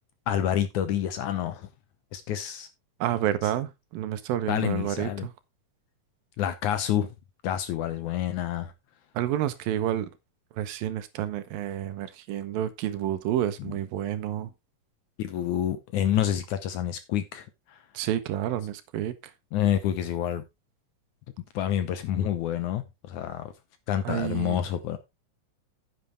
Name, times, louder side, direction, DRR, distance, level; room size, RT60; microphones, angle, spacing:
voice 1, 0.3-1.7 2.1-2.7 4.5-5.3 6.4-7.1 7.4-8.7 13.7-13.8 15.2-17.8 19.5-20.4 21.6-23.5 23.9-25.0, left 10 dB, 70° left, 2.0 m, -28 dB
voice 2, 3.0-5.3 9.1-10.1 10.5-14.5 17.9-19.1 24.0-24.6, right 11 dB, 80° right, 2.7 m, -29 dB
9.8 x 9.0 x 3.3 m
omnidirectional pair, 4.1 m